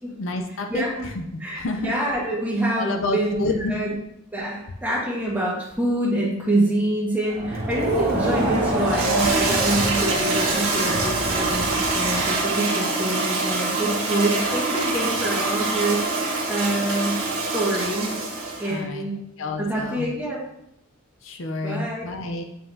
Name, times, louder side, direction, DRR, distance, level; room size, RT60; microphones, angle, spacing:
voice 1, 0.2-0.8 1.2-1.9 2.8-3.8 18.6-19.0 19.4-20.1 21.2-22.4, left 2 dB, 60° left, 5 dB, 0.5 m, -29 dB
voice 2, 0.7-1.0 1.4-3.9 4.3-18.3 18.6-19.1 19.6-20.4 21.6-22.0, right 1 dB, 10° right, -5 dB, 1.5 m, -26 dB
Crowd, 7.3-12.5, right 2 dB, 40° right, 1.0 m, -27 dB
Toilet flush, 7.7-18.8, right 2 dB, 60° right, 1.9 m, -25 dB
7.5 x 5.4 x 2.7 m, 0.79 s
head